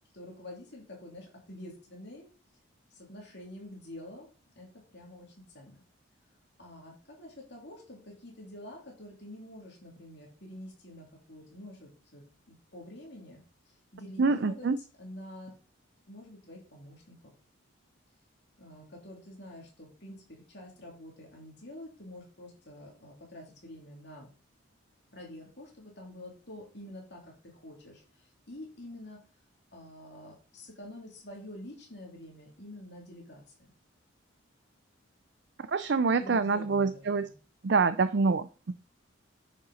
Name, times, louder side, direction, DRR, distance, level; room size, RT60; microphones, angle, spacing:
voice 1, 0.1-2.3 2.9-4.3 4.5-5.3 5.5-5.8 6.6-13.4 13.9-15.5 16.1-17.3 18.6-24.3 25.1-29.2 29.7-33.5 36.1-37.3, left 1 dB, 55° left, -2 dB, 3.1 m, -47 dB
voice 2, 14.2-14.8 35.7-37.3 37.6-38.5, right 4 dB, 55° right, 12 dB, 0.4 m, -26 dB
9.7 x 5.3 x 4.2 m, 0.36 s
head